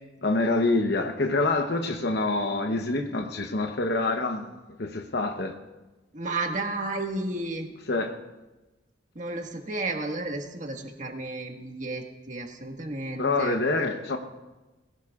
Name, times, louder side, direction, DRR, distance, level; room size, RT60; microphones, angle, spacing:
voice 1, 0.2-4.5 4.8-5.6 7.9-8.1 13.2-14.2, left 2 dB, 60° left, 4 dB, 0.9 m, -26 dB
voice 2, 6.1-7.7 9.1-13.6, right 2 dB, 40° right, 3 dB, 1.6 m, -32 dB
21.5 x 17.5 x 2.4 m, 1.1 s
head